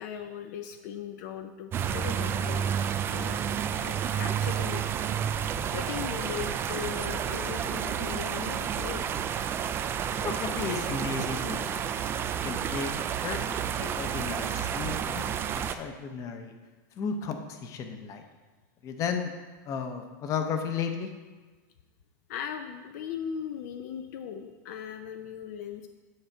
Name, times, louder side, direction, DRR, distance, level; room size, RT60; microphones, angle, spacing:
voice 1, 0.0-2.7 3.1-3.4 3.8-4.9 5.7-9.0 22.3-25.9, left 8 dB, 65° left, 7 dB, 0.6 m, -38 dB
sound 1, 1.7-15.7, right 8 dB, 25° right, 0.3 m, -30 dB
voice 2, 10.2-11.8 12.4-12.9 13.2-15.2 15.5-16.5 17.0-18.2 18.8-19.3 19.7-21.1, left 6 dB, 35° left, 6 dB, 0.8 m, -34 dB
9.5 x 4.3 x 5.9 m, 1.3 s
supercardioid pair, 150°, 10 cm